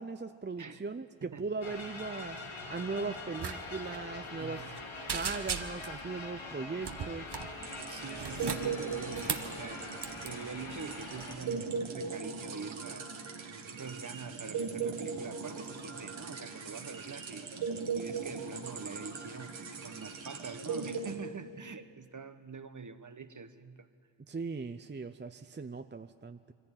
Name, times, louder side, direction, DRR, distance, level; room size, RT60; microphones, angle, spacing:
voice 1, 0.0-2.4 2.7-4.7 5.1-7.3 24.3-26.5, right 4 dB, 25° right, 9 dB, 0.6 m, -39 dB
sound 1, 1.6-11.4, left 3 dB, 80° left, 2.1 m, -44 dB
sound 2, 3.4-3.6 3.8-4.0 4.4-4.8 5.1-6.0 6.8-7.5 8.1-9.5 10.0-10.3, right 6 dB, 60° right, 1.2 m, -37 dB
voice 2, 4.4-4.8 7.9-9.9 10.2-13.1 13.7-17.5 17.9-23.9, right 5 dB, 40° right, 11 dB, 1.1 m, -45 dB
sound 3, 7.6-21.2, right 5 dB, 85° right, 1.8 m, -39 dB
22.5 x 15.0 x 8.9 m, 2.2 s
cardioid pair, 50°, 45 cm